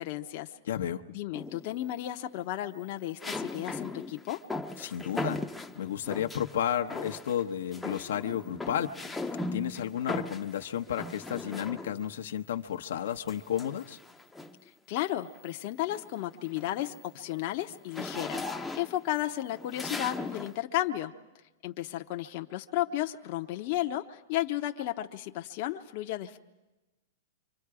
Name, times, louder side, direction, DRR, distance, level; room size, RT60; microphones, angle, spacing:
voice 1, 0.0-0.5 1.1-4.4 14.9-21.1 21.6-26.4, left 14 dB, 50° left, 4 dB, 0.8 m, -33 dB
voice 2, 0.6-1.0 4.8-5.4 5.8-14.0, left 10 dB, 80° left, 5 dB, 0.9 m, -32 dB
Walking on Metal Floor, 1.3-1.9 3.2-6.5 6.9-7.5 7.7-12.2 13.3-14.7 15.2-15.4 15.8-20.6, left 2 dB, 5° left, 0.7 m, -38 dB
29.0 x 25.0 x 4.9 m, 1.1 s
hypercardioid pair, 140°, 0 cm